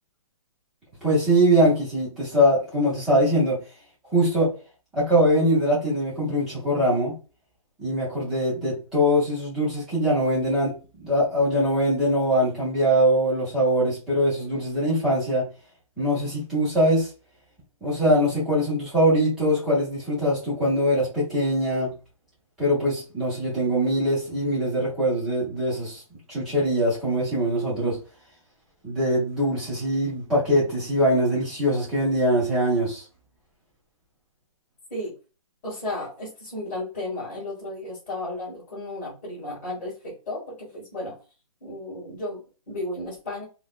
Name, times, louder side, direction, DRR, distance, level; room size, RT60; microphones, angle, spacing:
voice 1, 1.0-3.6 4.1-4.5 4.9-7.1 7.8-15.5 16.0-17.1 17.8-21.9 22.6-26.0 26.3-28.0 28.8-33.0, equal, ahead, 0.5 m, -22 dB
voice 2, 35.6-41.2 41.6-43.4, left 1 dB, 25° left, 1.5 m, -34 dB
3.9 x 2.0 x 2.3 m
hypercardioid pair, 175°, 19 cm